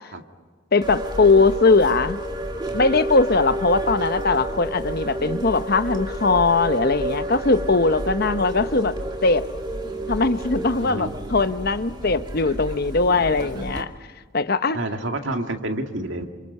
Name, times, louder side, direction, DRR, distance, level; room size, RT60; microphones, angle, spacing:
voice 1, 0.7-2.2 2.7-8.9 9.2-9.4 10.1-13.9 14.3-14.8, left 3 dB, 45° left, 11 dB, 0.9 m, -20 dB
sound 1, 0.8-13.8, right 1 dB, 20° right, 2.0 m, -30 dB
voice 2, 10.8-11.1 14.7-16.3, right 1 dB, 60° right, 4 dB, 2.3 m, -28 dB
29.0 x 27.0 x 5.5 m, 1.5 s
head